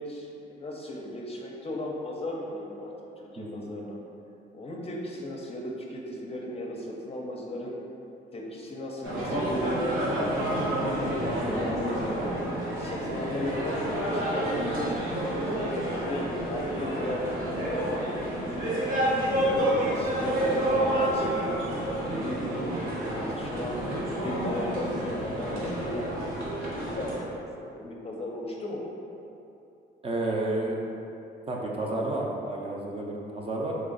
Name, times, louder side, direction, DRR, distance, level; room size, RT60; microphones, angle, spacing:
voice 1, 0.0-2.9 3.2-4.0 4.5-7.8 8.3-10.0 10.5-12.0 12.5-18.6 19.3-21.6 22.0-28.9, left 1 dB, 30° left, -1 dB, 0.6 m, -36 dB
sound 1, 9.0-27.2, right 1 dB, 90° right, 1.0 m, -29 dB
voice 2, 30.0-30.8 31.5-33.7, right 2 dB, 30° right, -2 dB, 0.6 m, -31 dB
3.9 x 2.5 x 3.8 m, 2.8 s
cardioid pair, 90°, 20 cm